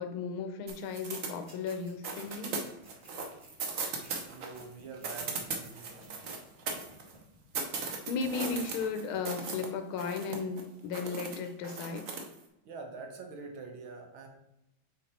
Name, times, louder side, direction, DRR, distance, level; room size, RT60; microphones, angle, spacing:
voice 1, 0.0-2.6 8.1-12.1, left 5 dB, 90° left, 8 dB, 1.6 m, -35 dB
sound 1, 0.7-1.8 2.0-4.6 4.9-7.2 7.5-9.7 10.0-10.6 10.9-12.3, right 4 dB, 55° right, 1.0 m, -38 dB
sound 2, 1.5-8.0 8.2-8.9 9.1-9.2, equal, 25° right, 1.8 m, -56 dB
voice 2, 4.3-6.2 12.7-14.3, right 4 dB, 80° right, 2 dB, 1.9 m, -45 dB
6.1 x 3.8 x 4.3 m, 0.86 s
omnidirectional pair, 2.2 m